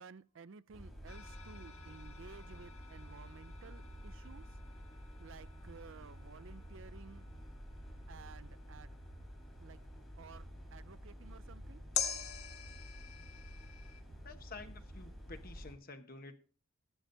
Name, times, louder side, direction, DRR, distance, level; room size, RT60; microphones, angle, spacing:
voice 1, 0.0-4.4 5.2-7.2 8.1-9.0 9.6-9.8 10.2-11.8, right 5 dB, 60° right, 0.4 m, -55 dB
sound 1, 0.7-15.7, equal, ahead, 4.0 m, -50 dB
sound 2, 1.1-10.5 11.9-14.0, left 8 dB, 85° left, 1.5 m, -46 dB
voice 2, 14.2-16.4, left 3 dB, 40° left, 1.2 m, -50 dB
16.0 x 11.5 x 2.7 m
head